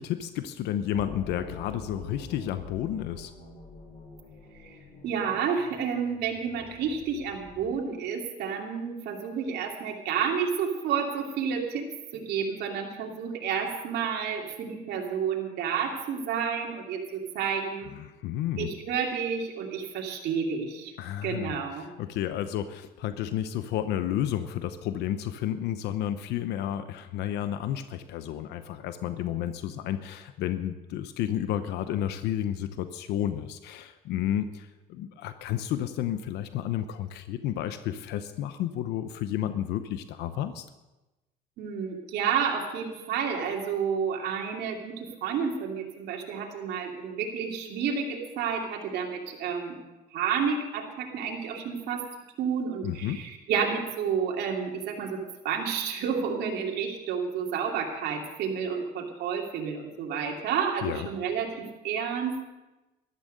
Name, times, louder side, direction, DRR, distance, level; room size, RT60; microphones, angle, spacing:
voice 1, 0.0-3.3 18.0-18.7 21.0-21.5 22.0-40.6 52.8-53.2 60.8-61.1, left 11 dB, 85° left, 11 dB, 0.9 m, -31 dB
sound 1, 0.9-7.9, left 3 dB, 40° left, 6.2 m, -46 dB
voice 2, 5.0-17.9 18.6-20.9 21.2-21.9 41.6-49.8 50.1-52.0 52.4-62.4, right 6 dB, 75° right, 0 dB, 2.8 m, -30 dB
14.0 x 12.5 x 6.7 m, 1.0 s
cardioid pair, 110°, 17 cm